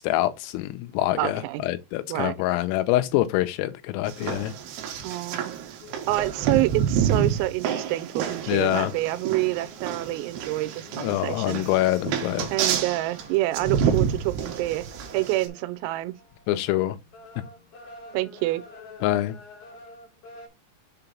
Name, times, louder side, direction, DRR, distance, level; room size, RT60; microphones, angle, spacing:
voice 1, 0.0-4.5 8.5-8.9 11.0-12.5 16.5-17.0 19.0-19.4, left 15 dB, 90° left, 3.3 m, -25 dB
voice 2, 1.2-1.6 2.1-2.3 5.0-5.5 6.1-11.6 12.5-14.9 15.1-16.1 18.1-18.6, right 17 dB, 90° right, 3.4 m, -27 dB
sound 1, 4.1-15.5, right 8 dB, 70° right, 2.6 m, -29 dB
sound 2, 5.8-20.5, left 2 dB, 70° left, 1.3 m, -49 dB
7.6 x 2.9 x 5.2 m
omnidirectional pair, 5.9 m